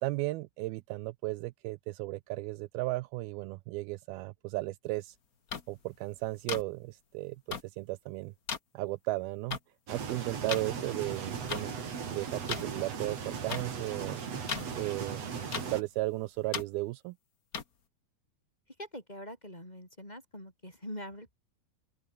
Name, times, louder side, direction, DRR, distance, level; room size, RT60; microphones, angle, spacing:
voice 1, 0.0-5.2 5.7-8.3 8.7-9.6 9.9-11.7 12.1-14.2 14.7-15.3 15.6-17.2, right 20 dB, 80° right, 2.4 m, -35 dB
sound 1, 5.5-5.6 6.5-6.6 7.5-7.6 8.5-8.6 9.5-9.6 10.5-10.6 11.5-11.6 12.5-12.6 13.5-13.6 14.5-14.6 15.5-15.6 16.5-16.6 17.5-17.6, left 6 dB, 55° left, 1.0 m, -34 dB
sound 2, 9.9-15.8, right 6 dB, 45° right, 3.8 m, -38 dB
voice 2, 18.8-21.3, equal, 10° left, 6.5 m, -44 dB
open air
omnidirectional pair, 4.5 m